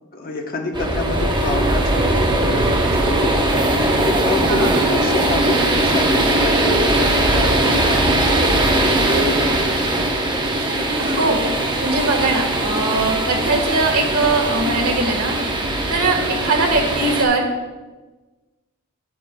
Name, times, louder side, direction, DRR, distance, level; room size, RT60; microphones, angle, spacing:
voice 1, 0.1-3.7 4.0-9.6 12.0-12.1 16.1-16.4, left 2 dB, 40° left, 2 dB, 0.9 m, -27 dB
sound 1, 0.7-17.2, right 1 dB, 20° right, 0.8 m, -19 dB
voice 2, 11.0-11.4 11.8-15.3 15.9-16.2 16.4-17.5, right 3 dB, 80° right, 1 dB, 1.5 m, -20 dB
9.2 x 8.9 x 2.2 m, 1.2 s
head